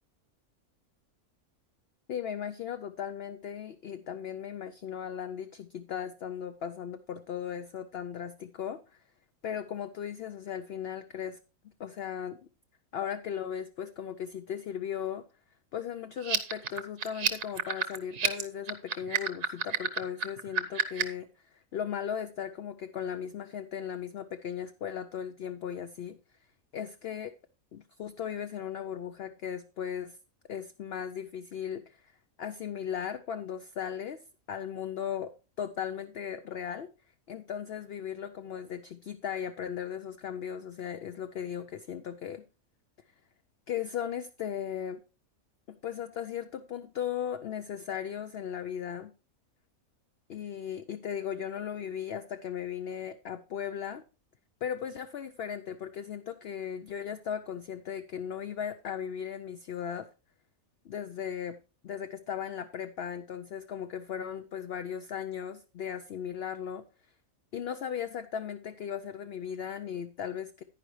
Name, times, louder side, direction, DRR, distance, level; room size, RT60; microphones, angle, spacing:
voice 1, 2.1-9.0 9.4-11.4 11.6-12.4 12.9-15.2 15.7-26.2 26.7-27.3 27.7-30.2 30.5-34.2 34.5-36.9 37.3-42.5 43.7-45.0 45.7-49.1 50.3-54.1 54.6-60.1 60.8-61.6 61.8-66.8 67.5-70.6, left 8 dB, 60° left, 0.7 m, -37 dB
sound 1, 16.2-21.2, right 6 dB, 60° right, 1.2 m, -30 dB
10.0 x 10.0 x 3.2 m
omnidirectional pair, 1.5 m